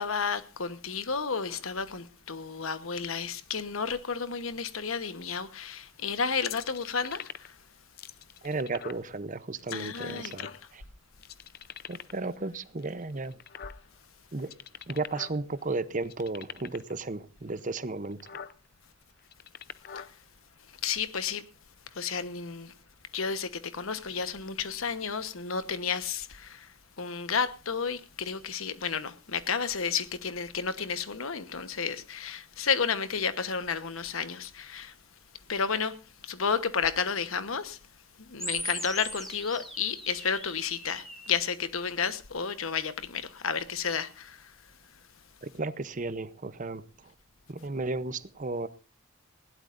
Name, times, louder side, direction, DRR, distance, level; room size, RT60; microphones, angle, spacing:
voice 1, 0.0-7.6 9.7-10.6 19.9-20.1 20.8-21.5 21.9-22.7 23.1-34.9 35.5-37.8 38.2-44.5, left 6 dB, 80° left, 1.2 m, -32 dB
sound 1, 6.4-7.6 8.0-9.1 9.6-10.8 11.2-12.3 12.8-14.0 14.4-15.4 15.6-15.7 16.0-16.9 17.6-17.7 18.0-18.5 19.2-20.1, left 9 dB, 45° left, 0.6 m, -42 dB
voice 2, 8.4-10.8 11.9-13.4 14.3-14.5 14.9-18.4 45.4-46.8 47.5-48.7, right 3 dB, 40° right, 0.7 m, -34 dB
sound 2, 38.4-41.4, equal, ahead, 2.5 m, -39 dB
20.0 x 17.0 x 2.6 m
head